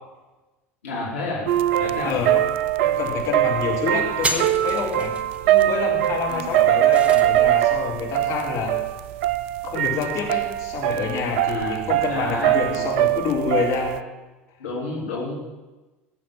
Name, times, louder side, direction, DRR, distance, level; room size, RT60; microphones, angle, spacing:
voice 1, 0.8-1.5 1.8-2.2 6.3-6.6 11.5-12.9 14.6-15.4, left 2 dB, 70° left, -5 dB, 3.3 m, -31 dB
sound 1, 1.5-14.0, right 14 dB, 55° right, 0.4 m, -22 dB
voice 2, 2.0-2.5 2.8-5.2 5.4-8.8 9.6-14.0, left 6 dB, 45° left, -2 dB, 4.7 m, -27 dB
sound 2, 4.2-7.5, right 1 dB, 15° right, 1.7 m, -32 dB
21.0 x 7.4 x 7.6 m, 1.2 s
figure-of-eight pair, 70°, 7 cm